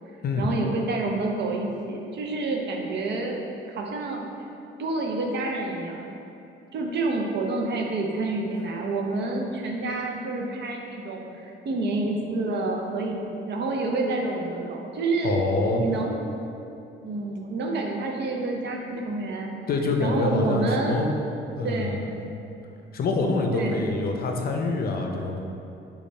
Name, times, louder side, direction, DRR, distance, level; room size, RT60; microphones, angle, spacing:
voice 1, 0.4-3.4 3.7-4.3 4.8-6.1 6.7-15.4 15.7-16.2 17.0-19.5 20.0-21.1 21.6-22.1 23.5-23.8, right 2 dB, 60° right, 1 dB, 0.6 m, -28 dB
voice 2, 15.2-15.8 19.7-21.1 21.6-22.3 22.9-25.4, left 3 dB, 50° left, 2 dB, 0.5 m, -26 dB
5.2 x 2.4 x 4.1 m, 2.7 s
cardioid pair, 90°, 20 cm